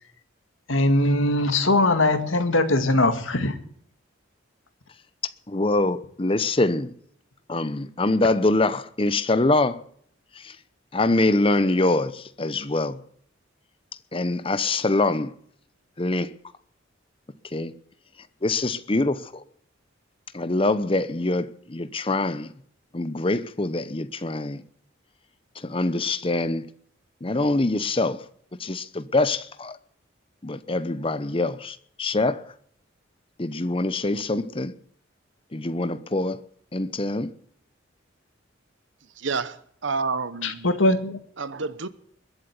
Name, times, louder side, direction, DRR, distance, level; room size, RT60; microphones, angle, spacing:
voice 1, 0.7-3.6 40.4-41.2, left 2 dB, 80° left, 1.9 m, -21 dB
voice 2, 5.5-6.9 7.5-9.8 10.3-10.6 10.9-13.0 14.1-15.3 16.0-16.3 17.5-17.7 18.4-19.4 20.3-22.5 22.9-24.6 25.5-26.7 27.2-28.2 28.6-29.8 30.4-32.4 33.4-34.7 35.5-36.4 36.7-37.3, left 2 dB, 25° left, 0.8 m, -24 dB
voice 3, 39.0-40.7 41.4-41.9, right 4 dB, 70° right, 1.0 m, -29 dB
21.5 x 8.0 x 8.3 m
head